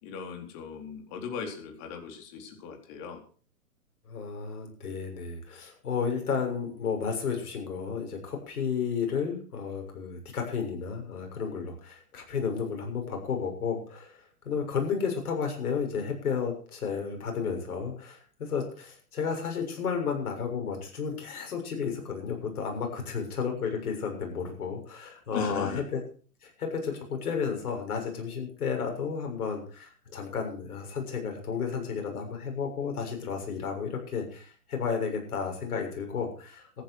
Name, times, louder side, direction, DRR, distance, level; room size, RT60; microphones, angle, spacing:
voice 1, 0.0-3.2 25.3-25.8, left 6 dB, 35° left, 4 dB, 4.3 m, -38 dB
voice 2, 4.1-26.0 26.4-36.8, left 6 dB, 65° left, 3 dB, 7.0 m, -32 dB
14.5 x 11.0 x 6.4 m, 0.42 s
hypercardioid pair, 130°, 47 cm